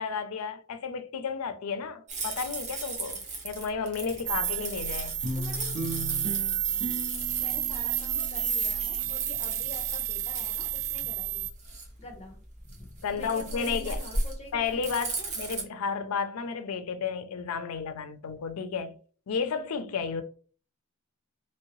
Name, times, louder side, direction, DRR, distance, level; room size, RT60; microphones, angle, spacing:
voice 1, 0.0-5.2 13.0-14.0 14.5-18.9 19.3-20.2, left 5 dB, 85° left, 0.4 m, -32 dB
sound 1, 2.1-15.6, right 3 dB, 35° right, 0.8 m, -37 dB
sound 2, 4.3-11.5, right 11 dB, 85° right, 0.3 m, -31 dB
sound 3, 5.2-9.9, right 1 dB, 65° right, 1.4 m, -38 dB
voice 2, 5.4-5.8 7.4-11.5 12.0-12.4 12.7-15.3, left 2 dB, 30° left, 0.8 m, -46 dB
3.0 x 2.7 x 3.0 m
head